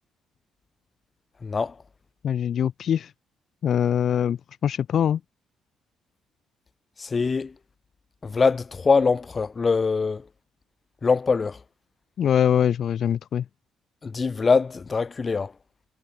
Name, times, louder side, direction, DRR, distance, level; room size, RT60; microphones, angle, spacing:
voice 1, 1.4-1.7 7.0-7.5 8.2-10.2 11.0-11.6 14.0-15.5, left 4 dB, 20° left, 5.4 m, -23 dB
voice 2, 2.2-3.1 3.6-4.4 4.6-5.2 12.2-13.4, left 9 dB, 45° left, 3.4 m, -23 dB
cardioid pair, 180°, 0 cm